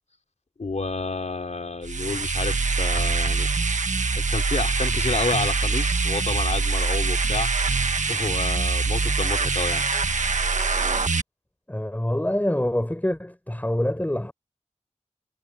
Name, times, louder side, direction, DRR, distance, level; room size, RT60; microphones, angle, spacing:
voice 1, 0.6-3.5 4.2-7.5 8.1-9.8, left 3 dB, 65° left, 4.1 m, -30 dB
sound 1, 1.8-11.2, right 4 dB, 75° right, 1.5 m, -24 dB
voice 2, 11.7-14.3, left 1 dB, 15° left, 5.5 m, -25 dB
wide cardioid pair, 65°, 13 cm